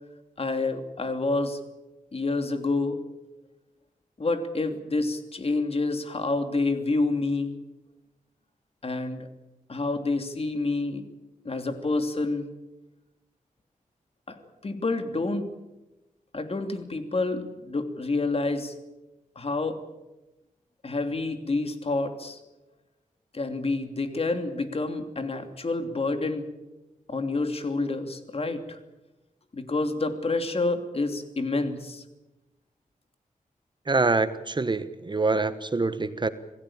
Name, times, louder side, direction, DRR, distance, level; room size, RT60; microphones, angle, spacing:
voice 1, 0.4-1.6 2.1-3.0 4.2-7.5 8.8-9.3 9.7-11.0 11.4-12.5 14.3-14.4 14.6-15.5 16.3-18.7 19.3-19.8 20.8-22.4 23.3-26.5 27.1-28.8 29.5-32.0, left 3 dB, 45° left, 7 dB, 2.9 m, -28 dB
voice 2, 33.9-36.3, right 3 dB, 35° right, 12 dB, 1.2 m, -25 dB
27.0 x 17.0 x 8.8 m, 1.0 s
wide cardioid pair, 100°, 14 cm